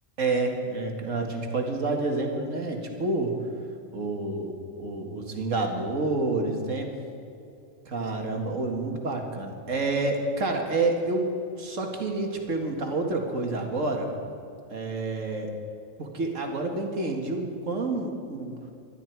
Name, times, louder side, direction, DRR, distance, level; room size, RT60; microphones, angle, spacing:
voice 1, 0.2-3.4 3.9-6.9 7.9-14.1 14.7-15.5 16.0-18.6, right 2 dB, 75° right, 2 dB, 2.2 m, -28 dB
20.0 x 12.5 x 4.6 m, 2.6 s
omnidirectional pair, 1.4 m